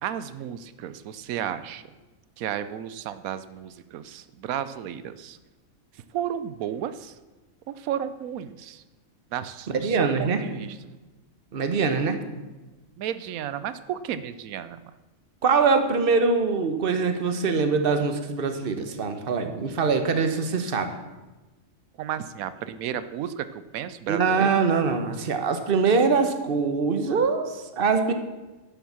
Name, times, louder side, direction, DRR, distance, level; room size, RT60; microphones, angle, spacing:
voice 1, 0.0-1.9 2.4-5.4 5.9-7.2 7.7-8.8 9.3-10.8 13.0-14.8 22.0-24.6, right 10 dB, 90° right, 13 dB, 1.1 m, -33 dB
voice 2, 9.7-10.4 11.5-12.2 15.4-20.9 24.1-28.1, right 5 dB, 45° right, 8 dB, 1.2 m, -23 dB
11.0 x 7.2 x 7.2 m, 1.2 s
omnidirectional pair, 1.4 m